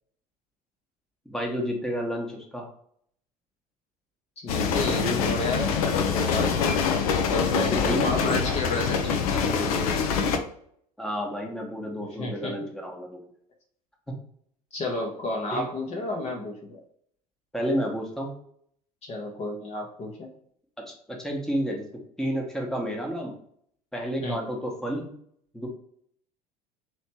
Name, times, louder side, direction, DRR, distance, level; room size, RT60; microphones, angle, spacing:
voice 1, 1.2-2.7 7.8-8.1 11.0-13.3 14.1-14.2 15.5-15.6 17.5-18.3 20.8-23.3 23.9-25.1 25.5-25.7, equal, ahead, 0 dB, 1.1 m, -31 dB
voice 2, 4.4-6.7 7.3-10.0 12.0-12.5 14.7-16.8 19.0-20.3 24.2-24.4, left 2 dB, 30° left, 0 dB, 0.9 m, -32 dB
sound 1, 4.5-10.4, left 6 dB, 60° left, 0.6 m, -25 dB
3.1 x 3.0 x 4.4 m, 0.65 s
figure-of-eight pair, 70°, 20 cm